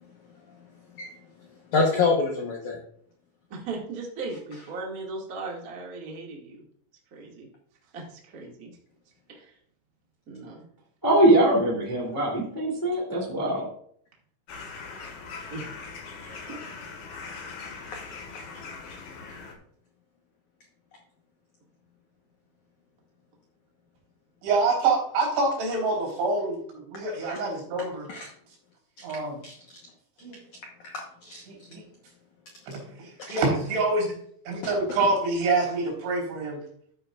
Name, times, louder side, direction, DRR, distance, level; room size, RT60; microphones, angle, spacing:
voice 1, 1.7-2.8 27.2-27.3 28.1-28.3 29.1-29.6 30.8-31.4 33.2-33.3, left 4 dB, 90° left, 1 dB, 1.6 m, -27 dB
voice 2, 3.5-6.6 7.1-7.5 7.9-8.8 9.3-9.5 10.3-10.6 15.5-15.7 16.3-16.6, right 3 dB, 40° right, -2 dB, 1.2 m, -37 dB
voice 3, 11.0-13.7, right 1 dB, 10° left, -2 dB, 1.2 m, -22 dB
sound 1, 14.5-19.5, left 4 dB, 60° left, 3.0 m, -41 dB
voice 4, 24.4-28.1 29.0-29.4 30.2-30.4 31.5-31.8 32.7-34.2 34.5-36.6, right 3 dB, 80° right, -2 dB, 6.1 m, -26 dB
13.0 x 8.6 x 2.4 m, 0.63 s
omnidirectional pair, 5.3 m